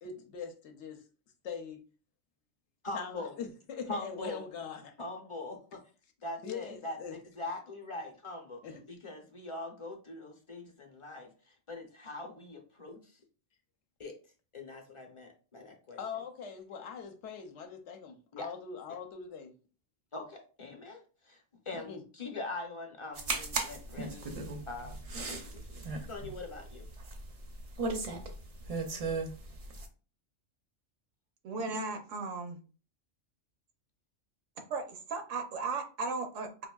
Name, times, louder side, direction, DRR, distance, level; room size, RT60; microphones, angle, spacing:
voice 1, 0.0-1.0 1.4-1.8 2.9-4.9 6.4-7.2 8.6-8.8 16.0-19.5 21.7-22.0, left 6 dB, 70° left, 0.9 m, -42 dB
voice 2, 2.8-3.3 3.9-4.4 5.0-5.8 6.2-8.6 8.9-13.2 14.0-14.2 14.5-16.0 18.3-18.5 20.1-24.3 24.7-25.0 25.3-26.9, left 2 dB, 35° left, 0.6 m, -42 dB
sound 1, 23.2-29.9, right 3 dB, 50° right, 0.4 m, -37 dB
voice 3, 31.4-32.6 34.7-36.7, right 3 dB, 85° right, 1.1 m, -36 dB
4.9 x 2.5 x 2.3 m
omnidirectional pair, 1.3 m